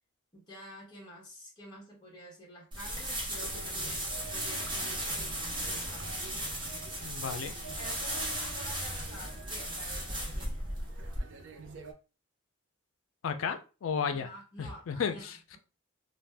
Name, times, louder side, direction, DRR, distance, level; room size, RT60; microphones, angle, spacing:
voice 1, 0.3-6.1 7.8-10.5 14.1-15.6, equal, 20° left, -4 dB, 1.1 m, -49 dB
sound 1, 2.7-11.2, right 1 dB, 25° right, 0.9 m, -36 dB
sound 2, 3.3-11.9, right 4 dB, 65° right, 0.5 m, -49 dB
voice 2, 7.0-7.5 13.2-14.3 14.6-15.6, left 6 dB, 80° left, 8 dB, 0.4 m, -33 dB
2.5 x 2.2 x 3.3 m, 0.34 s
head